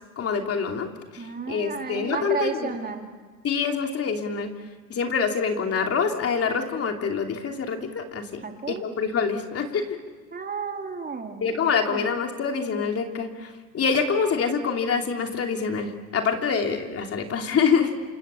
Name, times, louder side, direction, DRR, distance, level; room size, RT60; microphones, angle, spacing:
voice 1, 0.2-0.9 1.1-2.7 3.4-4.5 4.9-9.9 11.4-17.9, left 6 dB, 35° left, 4 dB, 3.1 m, -26 dB
voice 2, 1.2-3.1 8.4-8.8 10.3-11.5 11.9-12.1, right 5 dB, 20° right, 4 dB, 2.7 m, -32 dB
28.0 x 27.0 x 7.1 m, 1.4 s
hypercardioid pair, 100°, 43 cm